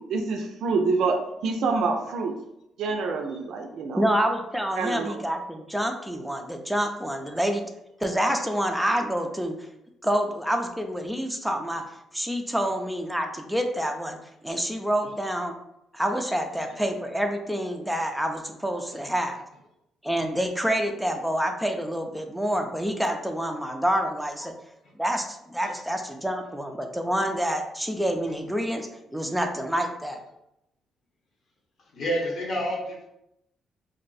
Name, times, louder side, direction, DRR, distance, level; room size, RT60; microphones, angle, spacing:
voice 1, 0.0-2.3 2.8-4.1 4.8-5.2, right 4 dB, 75° right, 3 dB, 0.4 m, -27 dB
voice 2, 4.0-7.6 8.0-9.6 10.0-11.8 12.1-14.2 14.4-15.5 15.9-19.4 20.0-24.5 25.0-30.2, equal, 5° right, 4 dB, 0.5 m, -27 dB
voice 3, 31.9-33.1, equal, 55° left, -2 dB, 0.9 m, -28 dB
2.6 x 2.1 x 3.9 m, 0.83 s
cardioid pair, 90°, 0 cm